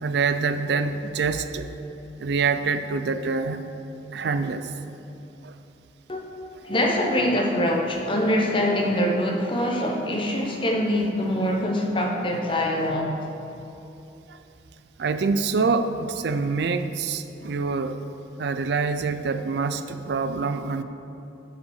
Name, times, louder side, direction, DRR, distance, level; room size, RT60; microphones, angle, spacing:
voice 1, 0.0-1.7 2.2-3.6 4.1-4.7 5.4-5.5 14.3-14.4 15.0-18.0 18.4-20.8, right 4 dB, 60° right, 10 dB, 0.4 m, -25 dB
voice 2, 6.1-13.2, left 1 dB, 25° left, 0 dB, 0.9 m, -24 dB
7.5 x 5.5 x 6.4 m, 2.8 s
head